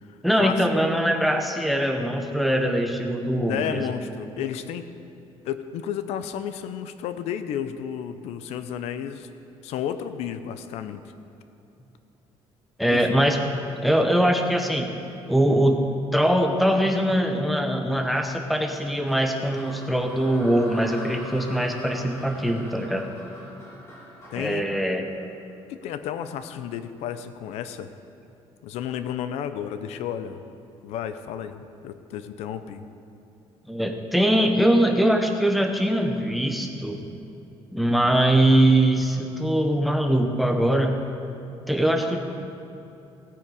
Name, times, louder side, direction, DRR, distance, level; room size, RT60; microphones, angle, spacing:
voice 1, 0.2-3.8 12.8-13.4 13.8-14.9 15.3-15.8 16.1-23.1 24.4-25.1 33.7-37.0 37.7-41.0 41.7-42.2, right 1 dB, ahead, 4 dB, 0.8 m, -22 dB
voice 2, 3.5-4.9 5.4-9.3 9.6-11.0 12.8-13.2 24.3-24.7 25.7-27.9 28.6-30.4 30.8-32.9, left 9 dB, 85° left, 11 dB, 0.7 m, -32 dB
sound 1, 18.7-25.9, left 1 dB, 25° left, 2.7 m, -43 dB
17.0 x 8.7 x 4.9 m, 2.8 s
cardioid pair, 175°, 11 cm